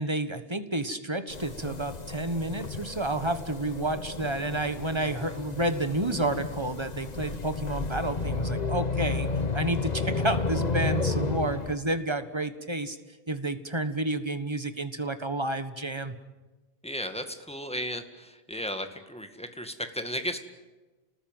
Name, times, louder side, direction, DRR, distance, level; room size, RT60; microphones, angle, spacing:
voice 1, 0.0-9.3 9.5-13.0 13.3-16.1, right 2 dB, 25° right, 10 dB, 1.5 m, -30 dB
sound 1, 1.3-11.8, left 4 dB, 40° left, 1.4 m, -32 dB
voice 2, 16.8-20.4, equal, 5° left, 7 dB, 2.0 m, -35 dB
29.0 x 19.5 x 9.1 m, 1.2 s
omnidirectional pair, 1.1 m